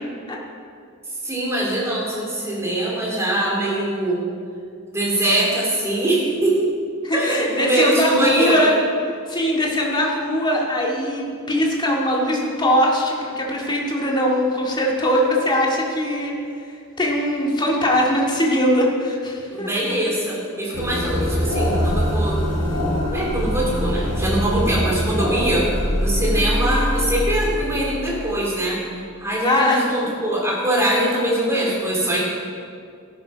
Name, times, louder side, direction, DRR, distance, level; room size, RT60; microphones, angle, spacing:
voice 1, 1.2-4.2 4.9-6.7 7.1-8.7 19.5-22.4 23.1-28.8 29.2-32.2, right 1 dB, 15° right, -4 dB, 3.7 m, -22 dB
voice 2, 7.0-8.7 9.3-16.3 17.0-19.7 25.5-25.6 29.4-29.9, equal, 20° left, -2 dB, 2.2 m, -21 dB
sound 1, 20.7-28.7, equal, 65° left, 3.5 m, -23 dB
14.0 x 11.5 x 5.2 m, 2.3 s
head